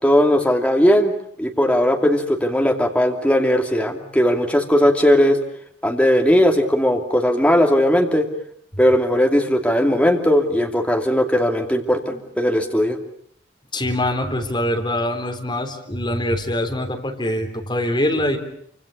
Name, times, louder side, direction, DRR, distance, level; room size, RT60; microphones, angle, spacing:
voice 1, 0.0-1.1 1.4-5.4 5.8-8.3 8.8-13.0, equal, 5° left, 3 dB, 2.7 m, -18 dB
voice 2, 13.7-18.4, left 1 dB, 25° left, 4 dB, 3.7 m, -23 dB
27.5 x 26.0 x 6.7 m, 0.65 s
head